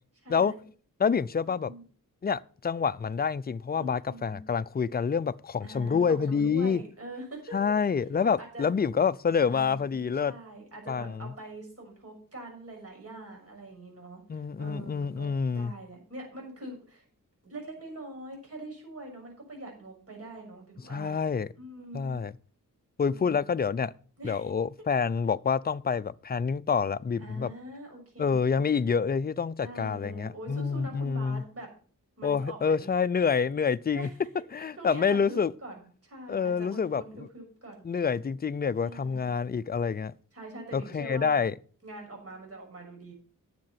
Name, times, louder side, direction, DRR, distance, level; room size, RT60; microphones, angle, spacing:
voice 1, 0.2-0.6 1.6-1.8 3.7-4.4 5.6-7.6 8.2-8.7 9.4-17.1 17.4-21.2 21.6-22.2 23.1-23.5 24.2-24.5 27.2-28.9 29.6-31.7 32.2-33.2 33.9-34.1 34.8-37.8 38.8-39.3 40.3-41.4 41.8-43.1, right 1 dB, 45° right, 6.5 m, -44 dB
voice 2, 1.0-1.7 2.2-6.8 7.5-10.3 10.9-11.3 14.3-15.7 20.9-21.5 21.9-22.3 23.0-23.9 24.2-27.5 28.2-31.4 32.2-34.1 34.5-35.5 36.3-37.0 37.8-40.1 40.7-41.5, left 6 dB, 30° left, 0.4 m, -27 dB
10.5 x 7.7 x 5.8 m
wide cardioid pair, 115°, 34 cm